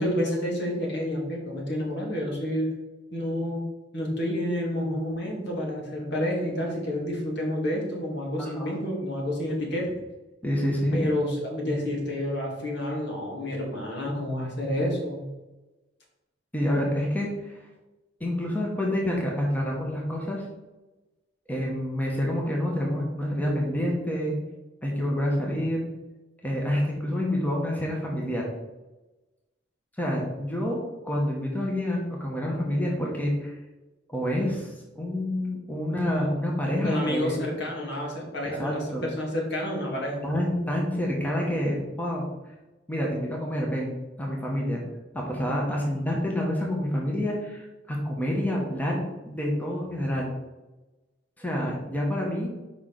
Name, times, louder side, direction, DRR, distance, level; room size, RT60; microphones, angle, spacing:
voice 1, 0.0-2.7 3.1-3.6 3.9-9.9 10.9-15.3 36.8-40.2, left 1 dB, 65° left, -2 dB, 2.2 m, -29 dB
voice 2, 8.4-8.8 10.4-11.0 16.5-17.5 18.2-20.4 21.5-24.3 24.8-25.8 26.4-28.4 30.0-33.6 34.1-37.3 38.4-39.1 40.2-42.3 42.9-44.8 45.1-50.3 51.4-52.5, left 1 dB, 10° left, -2 dB, 1.2 m, -28 dB
5.0 x 4.7 x 5.9 m, 1.1 s
head